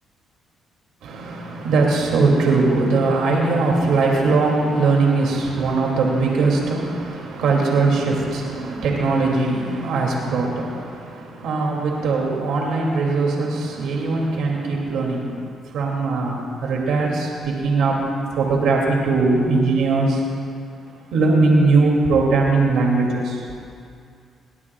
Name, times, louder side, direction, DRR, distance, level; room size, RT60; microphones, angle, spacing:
voice 1, 1.0-15.4 15.7-18.0 18.3-20.2 21.1-23.4, right 3 dB, 80° right, -2 dB, 2.7 m, -20 dB
21.5 x 18.5 x 2.4 m, 2.3 s
cardioid pair, 90°, 0 cm